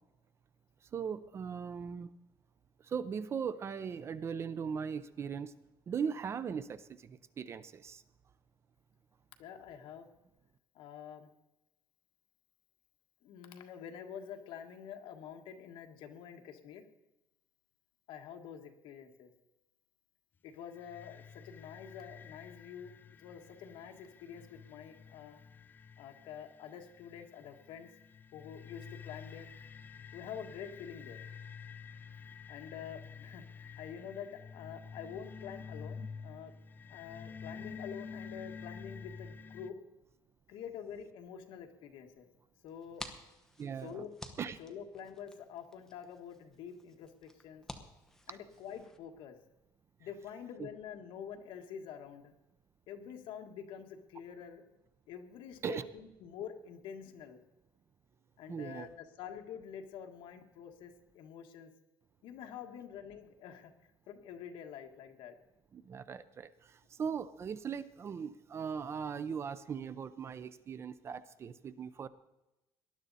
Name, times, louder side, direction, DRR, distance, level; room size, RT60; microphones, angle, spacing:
voice 1, 0.9-2.1 2.8-5.5 5.9-8.0 43.6-44.0 44.4-44.6 48.3-48.4 50.6-50.7 55.6-55.8 58.5-58.9 65.7-72.1, right 7 dB, 30° right, 14 dB, 0.5 m, -39 dB
voice 2, 9.4-10.1 10.7-11.3 13.2-16.8 18.1-19.3 20.4-22.9 23.2-25.4 26.0-27.9 28.3-29.5 30.1-31.2 32.5-36.5 36.9-39.8 40.5-42.3 42.6-43.0 43.8-44.1 44.6-47.6 48.3-49.4 50.0-52.3 52.9-54.6 55.1-57.4 58.4-61.7 62.2-63.7 64.1-65.3, left 8 dB, 70° left, 4 dB, 1.6 m, -47 dB
sound 1, 20.7-39.7, left 6 dB, 20° left, 0.5 m, -49 dB
sound 2, 42.7-49.0, left 1 dB, 5° left, 1.0 m, -52 dB
19.0 x 11.5 x 4.1 m, 0.96 s
cardioid pair, 170°, 9 cm